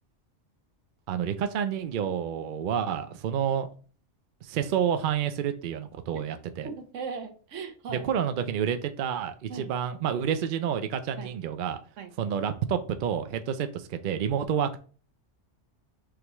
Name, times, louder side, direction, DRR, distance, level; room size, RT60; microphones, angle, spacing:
voice 1, 1.1-3.7 4.4-6.7 8.0-11.8 12.2-14.8, right 8 dB, 60° right, 0.5 m, -29 dB
voice 2, 6.6-8.1 9.5-9.8 11.2-11.3 12.0-12.1, right 5 dB, 80° right, 1.1 m, -38 dB
4.9 x 3.4 x 3.0 m
omnidirectional pair, 1.3 m